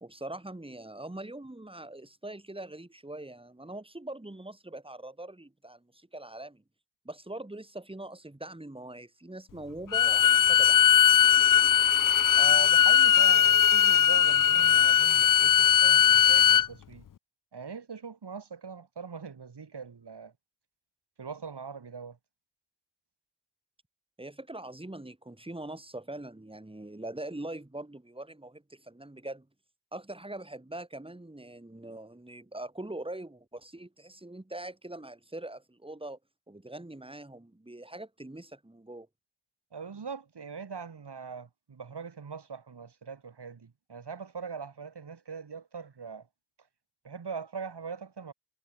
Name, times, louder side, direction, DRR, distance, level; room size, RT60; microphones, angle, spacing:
voice 1, 0.0-6.6 7.0-10.8 24.2-29.5 29.9-36.2 36.5-39.1, right 1 dB, 15° right, 2.5 m, -42 dB
Bowed string instrument, 9.9-16.7, left 9 dB, 50° left, 0.5 m, -20 dB
voice 2, 12.3-17.0 17.5-20.3 21.2-22.2 39.7-46.3 47.0-48.3, right 5 dB, 75° right, 3.2 m, -41 dB
wide cardioid pair, 100°, 41 cm